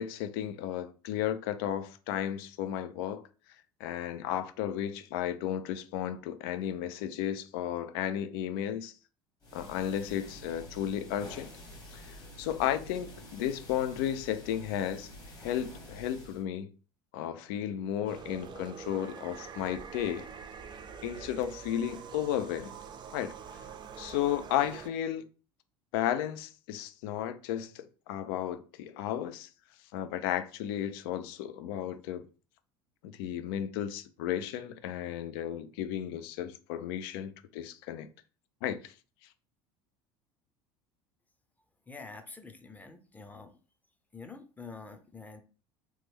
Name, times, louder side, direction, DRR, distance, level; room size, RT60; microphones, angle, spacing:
voice 1, 0.0-3.2 3.8-8.9 9.5-11.5 11.9-12.1 12.4-15.1 15.4-16.7 17.1-20.3 21.0-22.7 23.1-23.3 24.0-25.2 25.9-29.5 29.9-32.2 33.0-38.1 38.6-38.9, left 10 dB, 75° left, 0.4 m, -34 dB
sound 1, 9.4-16.4, equal, 30° left, 1.2 m, -48 dB
sound 2, 18.1-24.9, right 6 dB, 35° right, 0.4 m, -45 dB
voice 2, 41.9-43.5 44.1-45.4, left 4 dB, 15° left, 0.6 m, -47 dB
3.0 x 2.1 x 3.4 m
supercardioid pair, 90°, 12 cm